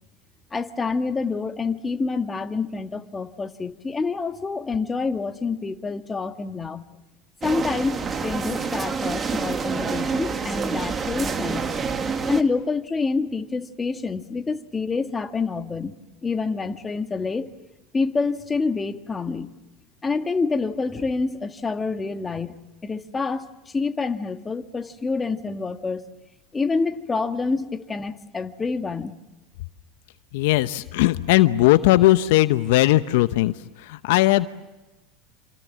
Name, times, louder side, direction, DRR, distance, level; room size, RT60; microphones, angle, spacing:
voice 1, 0.5-6.9 7.4-11.7 12.3-17.5 17.9-19.5 20.0-22.6 22.8-23.5 23.7-26.0 26.5-29.1, left 4 dB, 20° left, 7 dB, 1.8 m, -27 dB
sound 1, 7.4-12.4, right 5 dB, 30° right, 2.1 m, -27 dB
voice 2, 30.3-34.5, left 17 dB, 70° left, 13 dB, 0.8 m, -18 dB
27.5 x 27.0 x 7.4 m, 1.1 s
hypercardioid pair, 85°, 0 cm